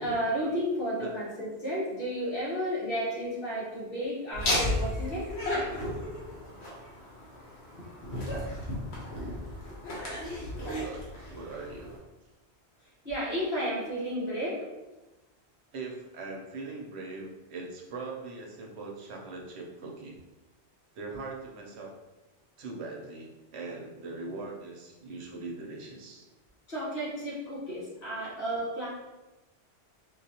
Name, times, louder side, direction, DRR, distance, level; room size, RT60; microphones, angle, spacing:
voice 1, 0.0-5.3 7.8-7.9 13.0-14.6 26.7-28.9, equal, 60° left, -7 dB, 1.5 m, -32 dB
Laughter, 4.3-12.0, left 1 dB, 75° left, 1.2 m, -34 dB
voice 2, 10.4-12.0 15.7-20.1 20.9-21.9 22.6-26.3, right 3 dB, 80° right, 0 dB, 0.9 m, -41 dB
4.3 x 2.3 x 2.8 m, 1.1 s
omnidirectional pair, 1.1 m